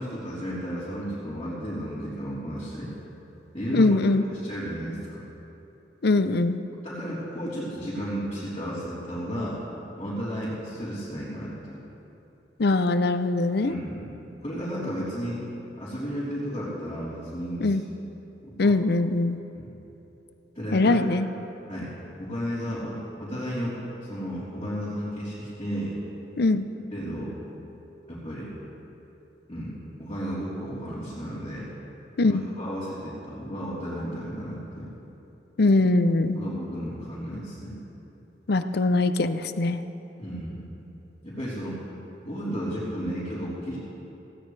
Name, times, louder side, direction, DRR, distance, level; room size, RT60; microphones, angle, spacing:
voice 1, 0.0-2.9 3.5-4.0 4.4-5.2 6.8-9.6 10.0-11.5 13.6-14.0 14.4-15.4 15.8-17.8 18.4-18.7 19.5-19.7 20.5-20.9 21.7-21.9 22.2-25.9 26.9-27.3 28.1-28.5 29.5-31.7 32.2-34.9 36.4-37.8 40.2-40.6 41.2-41.8 42.2-43.8, equal, 30° left, -12 dB, 3.7 m, -33 dB
voice 2, 3.7-4.2 6.0-6.6 12.6-13.7 17.6-17.8 18.6-19.4 20.7-21.3 26.4-26.7 32.2-32.5 35.6-36.4 38.5-39.8, left 2 dB, 65° left, 10 dB, 0.6 m, -22 dB
18.5 x 17.0 x 3.3 m, 3.0 s
head